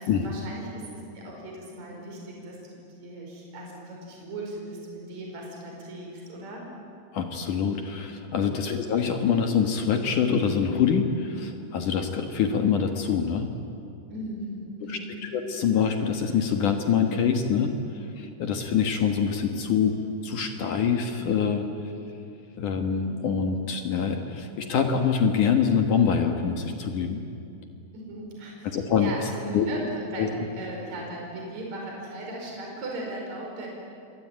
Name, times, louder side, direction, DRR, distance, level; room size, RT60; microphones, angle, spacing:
voice 1, 0.0-6.7 8.4-8.7 14.1-15.1 27.9-33.7, right 1 dB, 40° right, -1 dB, 6.1 m, -38 dB
voice 2, 7.1-13.5 14.9-15.0 15.3-19.9 20.2-21.7 22.6-27.2 28.6-29.1 29.5-29.7 30.2-30.3, left 7 dB, 60° left, 5 dB, 2.5 m, -25 dB
27.5 x 22.5 x 9.1 m, 2.6 s
omnidirectional pair, 4.8 m